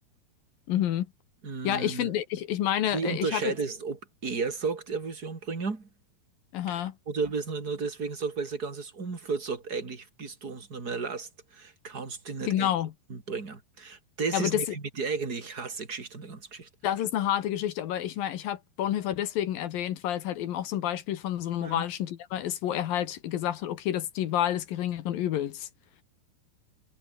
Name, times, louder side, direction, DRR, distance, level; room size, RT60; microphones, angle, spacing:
voice 1, 0.7-1.1 1.6-3.5 6.5-6.9 12.5-12.9 14.3-14.6 16.8-25.7, left 11 dB, 70° left, 2.9 m, -29 dB
voice 2, 1.4-2.1 2.9-4.0 4.2-5.9 6.7-6.8 7.1-12.7 13.1-16.7 21.6-21.8, right 4 dB, 25° right, 3.6 m, -33 dB
omnidirectional pair, 4.6 m